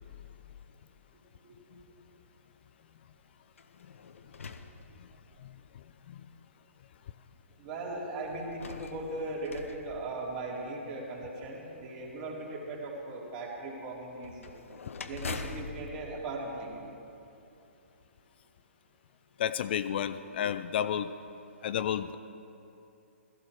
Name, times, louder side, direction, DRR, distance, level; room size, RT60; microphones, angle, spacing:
sound 1, 3.5-5.5 6.3-6.4 8.2-10.8 14.2-17.3, left 4 dB, 75° left, 0.9 m, -44 dB
voice 1, 7.6-14.5 15.1-16.7, right 2 dB, 40° right, -3 dB, 3.5 m, -38 dB
voice 2, 19.4-21.1 21.6-22.2, left 9 dB, 50° left, 12 dB, 0.5 m, -31 dB
16.0 x 14.5 x 4.8 m, 2.8 s
figure-of-eight pair, 130°, 7 cm